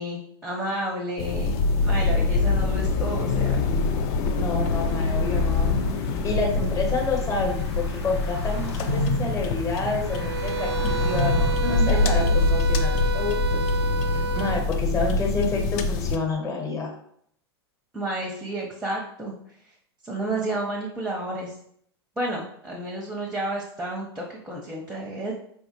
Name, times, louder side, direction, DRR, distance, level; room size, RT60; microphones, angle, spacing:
voice 1, 0.0-1.6 1.8-3.7 11.6-12.4 17.9-19.3 20.0-21.5 22.2-25.3, right 1 dB, 5° right, -1 dB, 0.6 m, -31 dB
sound 1, 1.2-16.2, left 3 dB, 45° left, 0.4 m, -24 dB
voice 2, 4.3-13.6 14.1-16.9, left 3 dB, 25° left, 0 dB, 0.9 m, -29 dB
sound 2, 4.6-11.6, left 1 dB, 80° left, 0.8 m, -33 dB
sound 3, 10.1-14.7, right 7 dB, 85° right, 0.4 m, -30 dB
4.4 x 2.0 x 2.9 m, 0.67 s
hypercardioid pair, 100°, 14 cm